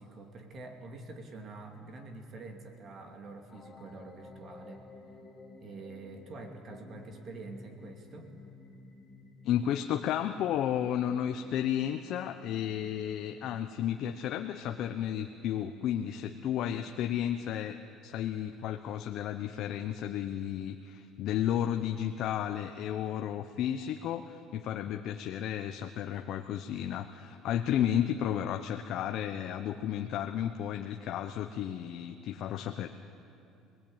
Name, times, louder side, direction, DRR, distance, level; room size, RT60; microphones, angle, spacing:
voice 1, 0.0-4.8 5.6-8.3, right 3 dB, 45° right, 4 dB, 2.7 m, -46 dB
sound 1, 3.5-17.5, left 3 dB, 30° left, 4.1 m, -54 dB
voice 2, 9.4-17.8 18.0-32.9, left 10 dB, 60° left, 6 dB, 0.9 m, -33 dB
26.0 x 20.0 x 8.9 m, 2.7 s
cardioid pair, 115°, 0 cm